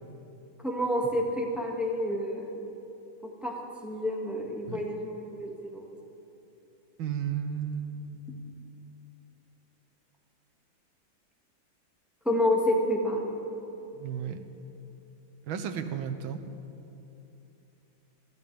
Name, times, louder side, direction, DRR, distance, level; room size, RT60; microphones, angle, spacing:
voice 1, 0.6-2.6 3.4-3.5 3.8-5.8 12.3-13.4, left 1 dB, ahead, -2 dB, 1.8 m, -29 dB
voice 2, 7.0-8.4 14.0-14.4 15.5-16.4, right 8 dB, 90° right, 7 dB, 1.7 m, -34 dB
27.0 x 13.5 x 3.5 m, 3.0 s
omnidirectional pair, 2.1 m